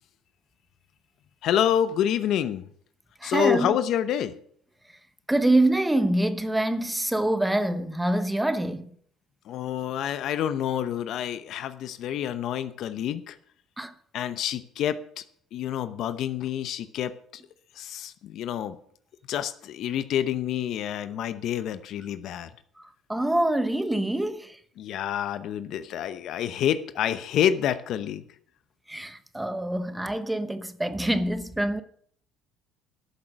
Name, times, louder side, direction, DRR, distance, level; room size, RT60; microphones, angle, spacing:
voice 1, 1.4-2.7 3.2-4.3 9.5-13.4 14.1-15.2 15.5-17.4 17.8-18.8 19.3-22.5 24.8-28.2, left 10 dB, 65° left, 0.8 m, -28 dB
voice 2, 3.2-3.8 5.3-8.9 13.8-13.9 22.8-24.6 28.9-31.8, right 1 dB, 10° right, 1.0 m, -25 dB
12.5 x 7.2 x 6.5 m
supercardioid pair, 85°, 0 cm